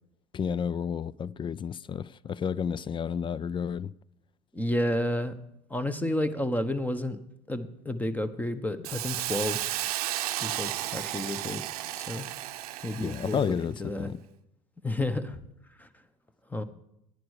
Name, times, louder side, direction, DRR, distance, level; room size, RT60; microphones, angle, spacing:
voice 1, 0.3-3.9 13.0-13.7 14.0-14.2, left 7 dB, 25° left, 0.4 m, -31 dB
voice 2, 4.5-5.3 5.7-7.2 7.5-9.7 10.4-11.6 11.9-12.3 12.8-14.1 14.8-15.4 15.8-15.9 16.5-16.6, left 1 dB, 10° left, 1.1 m, -31 dB
Hiss, 8.8-13.6, right 14 dB, 80° right, 0.7 m, -33 dB
10.5 x 9.7 x 4.9 m
hypercardioid pair, 75°, 19 cm